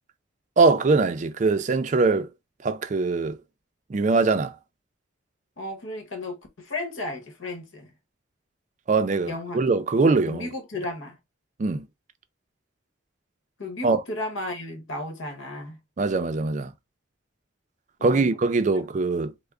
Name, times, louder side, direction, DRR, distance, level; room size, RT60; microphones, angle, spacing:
voice 1, 0.6-2.3 2.6-3.4 3.9-4.5 8.9-10.5 11.6-11.9 13.8-14.0 16.0-16.7 18.0-19.3, right 3 dB, 40° right, 0.4 m, -22 dB
voice 2, 5.6-7.9 9.3-9.6 10.3-11.2 13.6-15.8 18.0-18.4 18.8-18.9, left 2 dB, 80° left, 1.0 m, -34 dB
3.3 x 2.0 x 3.6 m
head